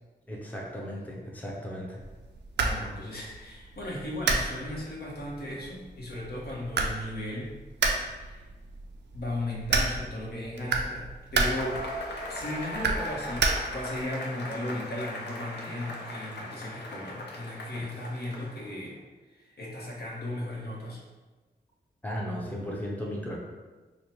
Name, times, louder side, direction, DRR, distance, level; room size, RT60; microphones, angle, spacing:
voice 1, 0.3-2.0 22.0-23.4, equal, 10° left, -3 dB, 0.6 m, -35 dB
sound 1, 2.0-14.0, right 3 dB, 85° right, 0.4 m, -32 dB
voice 2, 2.6-7.5 7.9-8.4 9.1-11.8 12.3-19.0 19.3-21.0, left 1 dB, 65° left, -4 dB, 0.9 m, -36 dB
Cheering / Applause / Crowd, 11.5-18.8, left 1 dB, 80° left, 0.6 m, -39 dB
3.1 x 2.1 x 4.2 m, 1.3 s
cardioid pair, 75°, 17 cm